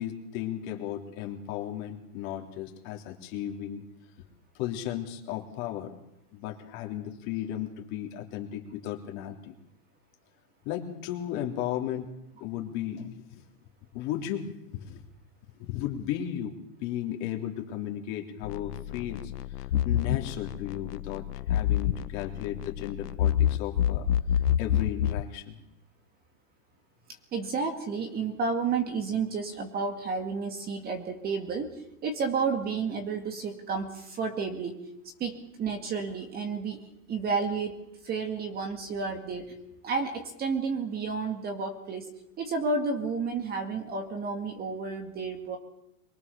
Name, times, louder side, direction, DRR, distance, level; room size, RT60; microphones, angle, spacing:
voice 1, 0.0-3.8 4.2-4.3 4.6-5.9 6.3-9.5 10.7-12.1 12.3-13.4 13.9-15.0 15.6-16.5 16.8-19.3 19.6-24.1 24.6-25.6, left 11 dB, 35° left, 3 dB, 3.5 m, -35 dB
sound 1, 18.4-25.3, left 10 dB, 90° left, 1.1 m, -28 dB
voice 2, 27.3-34.7 35.2-37.8 38.0-39.5 39.8-42.1 42.4-45.6, right 4 dB, 20° right, 5 dB, 2.1 m, -31 dB
23.5 x 21.5 x 7.0 m, 0.83 s
supercardioid pair, 155°, 46 cm